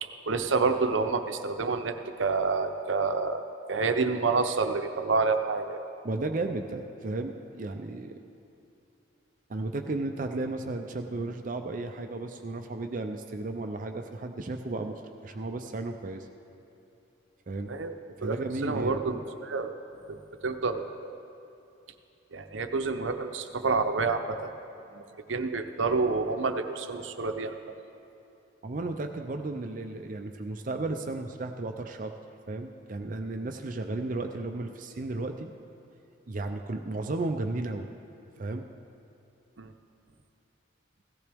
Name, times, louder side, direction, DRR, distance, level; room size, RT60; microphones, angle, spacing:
voice 1, 0.0-5.8 17.7-17.9 18.2-18.4 18.6-19.8 20.1-21.1 22.3-24.5 24.9-25.0 25.3-27.7 39.6-39.7, right 4 dB, 80° right, 7 dB, 0.8 m, -28 dB
voice 2, 6.0-8.2 9.5-16.3 17.5-17.7 18.2-19.0 28.6-32.1 32.5-35.5 36.3-37.9 38.4-38.7, right 2 dB, 45° right, 5 dB, 0.5 m, -34 dB
16.5 x 14.0 x 3.5 m, 2.8 s
head